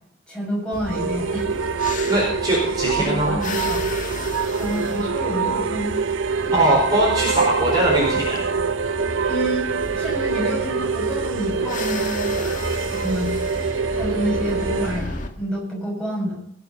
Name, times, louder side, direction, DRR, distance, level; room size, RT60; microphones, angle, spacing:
voice 1, 0.3-1.5 2.8-3.9 4.6-5.9 6.5-6.7 9.3-12.6 12.9-13.4 13.9-16.4, equal, 5° left, -4 dB, 6.7 m, -29 dB
sound 1, 0.7-15.3, left 2 dB, 40° left, 1.8 m, -33 dB
sound 2, 0.8-15.0, right 5 dB, 75° right, 0.6 m, -25 dB
voice 2, 2.1-3.4 6.5-8.4, right 1 dB, 20° right, -4 dB, 4.7 m, -21 dB
19.5 x 8.0 x 5.6 m, 0.69 s
head